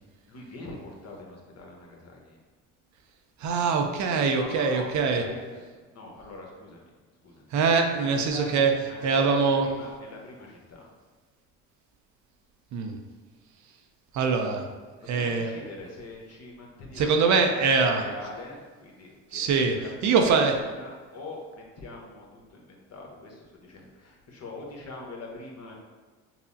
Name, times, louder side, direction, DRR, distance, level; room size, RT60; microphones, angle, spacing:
voice 1, 0.3-2.4 4.4-6.9 7.2-7.5 8.0-10.9 15.0-25.8, left 2 dB, 45° left, -1 dB, 1.0 m, -43 dB
voice 2, 3.4-5.2 7.5-8.7 9.0-9.7 12.7-13.0 14.1-14.7 15.1-15.5 17.0-18.0 19.3-19.7 20.0-20.5, right 5 dB, 50° right, 4 dB, 0.5 m, -23 dB
5.4 x 2.0 x 2.6 m, 1.4 s
supercardioid pair, 75°, 37 cm